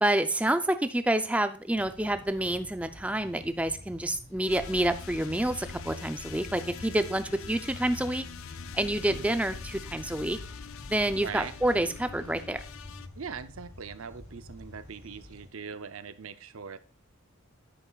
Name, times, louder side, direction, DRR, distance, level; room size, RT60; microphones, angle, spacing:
voice 1, 0.0-8.2 8.7-10.4 10.9-12.6, right 1 dB, 5° right, 9 dB, 0.5 m, -28 dB
sound 1, 1.7-15.5, left 1 dB, 55° left, 3.9 m, -49 dB
sound 2, 4.5-13.1, left 5 dB, 75° left, 0.5 m, -43 dB
voice 2, 11.1-11.5 13.2-16.8, right 6 dB, 70° right, 12 dB, 0.6 m, -41 dB
10.0 x 8.5 x 2.4 m, 0.37 s
head